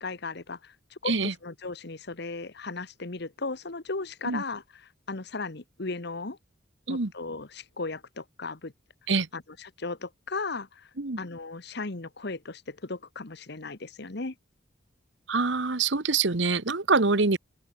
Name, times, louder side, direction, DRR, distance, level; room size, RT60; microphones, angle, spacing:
voice 1, 0.0-6.4 6.9-8.7 9.3-10.9 11.2-14.3, left 3 dB, 60° left, 1.4 m, -36 dB
voice 2, 15.3-17.4, right 4 dB, 70° right, 1.3 m, -25 dB
open air
head